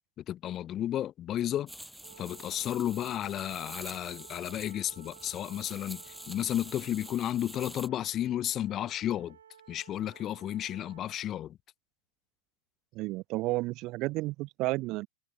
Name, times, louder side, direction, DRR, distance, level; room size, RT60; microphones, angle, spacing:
voice 1, 0.2-1.7 2.2-9.4 9.7-11.6, left 11 dB, 30° left, 0.9 m, -33 dB
sound 1, 1.7-7.9, equal, ahead, 5.2 m, -47 dB
Wind instrument woodwind instrument, 2.0-11.2, right 8 dB, 65° right, 2.2 m, -55 dB
voice 2, 12.9-15.1, right 20 dB, 40° right, 0.6 m, -32 dB
figure-of-eight pair, 90°, 0 cm